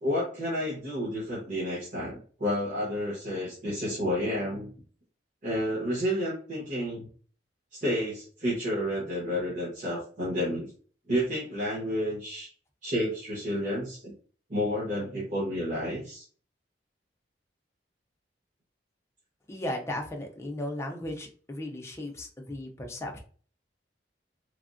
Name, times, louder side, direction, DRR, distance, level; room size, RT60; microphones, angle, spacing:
voice 1, 0.0-4.7 5.4-7.1 7.7-10.7 11.1-12.5 12.8-14.1 14.5-16.2, equal, 45° right, -7 dB, 1.0 m, -30 dB
voice 2, 19.5-23.2, left 1 dB, 15° left, 1 dB, 0.5 m, -36 dB
3.4 x 2.0 x 2.5 m, 0.42 s
head